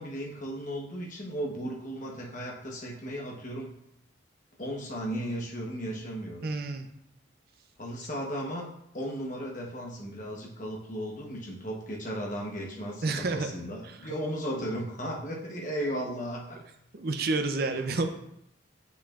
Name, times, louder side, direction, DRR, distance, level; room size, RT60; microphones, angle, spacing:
voice 1, 0.0-3.7 4.6-6.5 7.8-8.7 8.9-16.6, equal, 40° left, -2 dB, 1.1 m, -35 dB
voice 2, 6.4-6.9 13.0-13.5 14.0-14.1 16.9-18.1, right 3 dB, 50° right, 6 dB, 0.5 m, -29 dB
6.5 x 5.8 x 2.5 m, 0.77 s
head